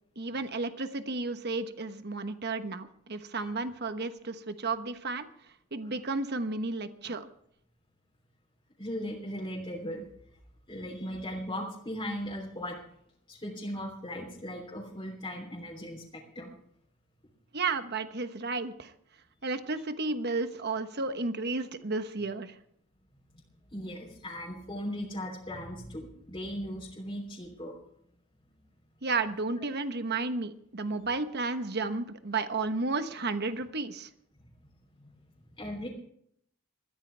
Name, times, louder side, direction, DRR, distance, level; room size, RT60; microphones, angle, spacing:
voice 1, 0.2-5.3 5.7-7.3 17.5-18.9 19.4-22.5 29.0-34.1, right 3 dB, 50° right, 9 dB, 1.2 m, -32 dB
voice 2, 8.8-10.0 10.7-12.8 13.3-16.5 23.7-27.7 35.0-35.1 35.6-35.9, equal, 25° left, -3 dB, 3.3 m, -38 dB
21.5 x 14.5 x 3.4 m, 0.69 s
head